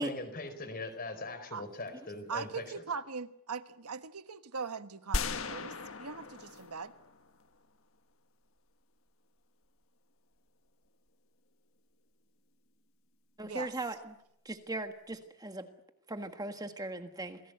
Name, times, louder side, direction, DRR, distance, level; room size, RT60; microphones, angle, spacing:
voice 1, 0.0-2.8, left 2 dB, 40° left, 4.4 m, -41 dB
voice 2, 2.3-5.7 6.0-6.9 13.4-13.8, right 5 dB, 85° right, 1.3 m, -40 dB
sound 1, 5.1-7.5, left 3 dB, 65° left, 1.5 m, -37 dB
voice 3, 13.4-14.0 14.4-15.7 16.1-17.4, right 2 dB, 15° right, 1.5 m, -38 dB
28.0 x 19.0 x 8.0 m
head